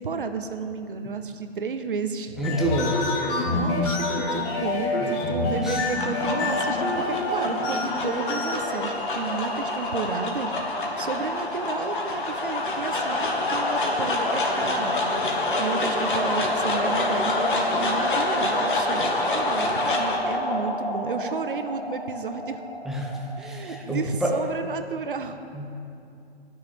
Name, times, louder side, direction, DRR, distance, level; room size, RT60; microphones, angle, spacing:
voice 1, 0.0-2.4 3.4-22.6 23.4-25.4, right 5 dB, 55° right, 7 dB, 0.9 m, -32 dB
sound 1, 2.3-10.6, left 2 dB, 25° left, 1.6 m, -28 dB
voice 2, 2.4-3.1 5.6-5.8 22.8-23.1 23.4-24.4 25.5-25.7, right 1 dB, ahead, -2 dB, 0.7 m, -27 dB
sound 2, 5.6-24.0, left 2 dB, 50° left, 1.9 m, -27 dB
12.0 x 6.7 x 9.0 m, 2.6 s
figure-of-eight pair, 130°, 32 cm